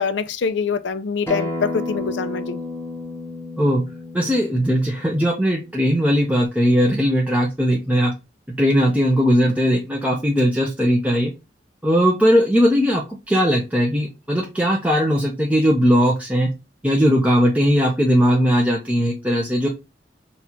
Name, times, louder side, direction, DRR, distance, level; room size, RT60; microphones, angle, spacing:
voice 1, 0.0-2.6, left 5 dB, 75° left, 0.5 m, -24 dB
Acoustic guitar, 1.3-6.5, left 2 dB, 10° left, 1.0 m, -32 dB
voice 2, 4.1-8.1 8.6-11.3 11.8-13.0 13.3-16.5 16.8-19.7, equal, 10° right, 0.5 m, -18 dB
4.1 x 2.4 x 4.2 m
head